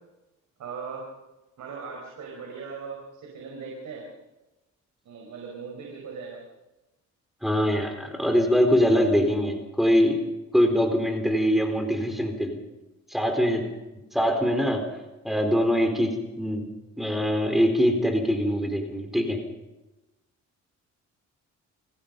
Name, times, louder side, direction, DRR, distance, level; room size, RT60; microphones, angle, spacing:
voice 1, 0.6-1.1 1.6-4.1 5.1-6.4, right 5 dB, 70° right, 0 dB, 5.5 m, -39 dB
voice 2, 7.4-10.2 10.5-12.6 13.1-13.7 14.1-14.8 15.2-16.7 17.0-19.4, equal, ahead, 4 dB, 4.2 m, -23 dB
27.5 x 17.5 x 5.4 m, 1.0 s
cardioid pair, 90°, 30 cm